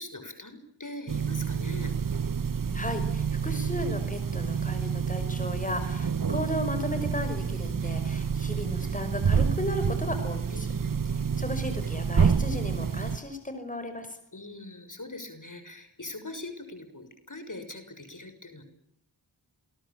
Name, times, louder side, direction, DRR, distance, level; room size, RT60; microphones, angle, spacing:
voice 1, 0.0-1.9 10.5-11.2 14.3-18.6, left 2 dB, 45° left, 9 dB, 6.5 m, -42 dB
sound 1, 1.1-13.2, right 6 dB, 45° right, 1.1 m, -28 dB
voice 2, 2.7-10.7 11.1-14.2, left 1 dB, 15° left, 8 dB, 5.3 m, -35 dB
27.5 x 21.5 x 8.8 m, 0.78 s
wide cardioid pair, 45°, 45 cm